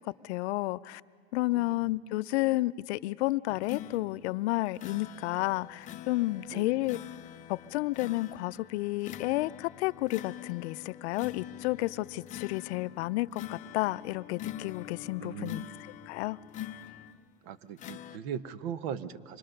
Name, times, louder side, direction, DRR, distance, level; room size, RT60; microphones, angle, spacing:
voice 1, 0.2-1.0 1.3-7.0 7.5-15.6 16.1-16.4, left 19 dB, 80° left, 17 dB, 0.5 m, -31 dB
voice 2, 1.5-1.8 6.5-6.8 15.2-15.7 17.4-19.4, right 8 dB, 65° right, 15 dB, 1.0 m, -39 dB
sound 1, 3.5-17.3 17.8-18.2, left 12 dB, 25° left, 0.5 m, -44 dB
25.5 x 22.0 x 6.5 m, 2.2 s
supercardioid pair, 150°, 32 cm